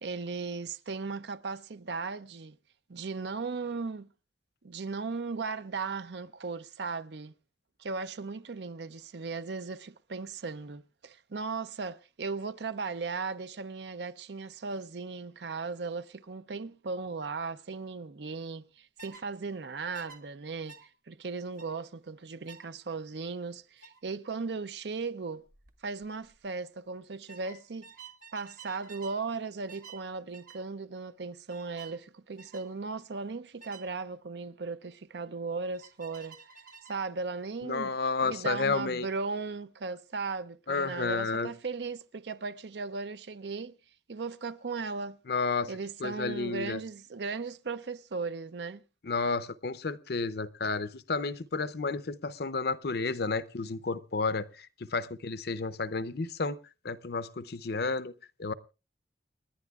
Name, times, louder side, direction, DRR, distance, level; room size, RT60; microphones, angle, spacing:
voice 1, 0.0-2.6 2.9-4.1 4.6-7.3 7.8-25.4 25.8-27.9 28.3-36.4 36.9-37.9 38.2-43.7 44.1-45.2 45.7-48.8, right 4 dB, 70° right, 0.6 m, -37 dB
sound 1, 19.0-19.3 19.9-20.2 20.7-20.9 21.6-21.8 22.5-22.7 23.8-24.0 25.5-25.7 26.0-26.4 27.3-29.2 29.7-30.0 30.3-30.6 31.5-32.0 32.4-32.7 33.6-33.9 35.7-37.0, right 6 dB, 50° right, 1.4 m, -51 dB
voice 2, 37.6-39.1 40.7-41.5 45.3-45.7 46.0-46.8 49.0-56.6 56.8-58.1 58.4-58.5, left 4 dB, 65° left, 0.7 m, -31 dB
29.0 x 11.0 x 2.4 m
head